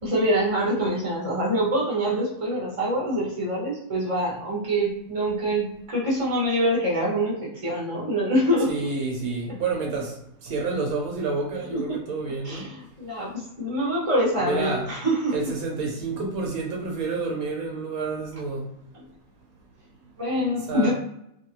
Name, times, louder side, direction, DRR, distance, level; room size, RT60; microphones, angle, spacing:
voice 1, 0.0-8.9 11.7-12.0 12.4-15.5 18.9-19.0 20.2-20.9, equal, 25° right, -4 dB, 1.0 m, -25 dB
voice 2, 8.7-10.1 10.4-12.6 14.4-14.8 15.3-18.6 20.7-20.9, right 3 dB, 85° right, 0 dB, 1.2 m, -29 dB
2.9 x 2.4 x 2.8 m, 0.78 s
omnidirectional pair, 1.5 m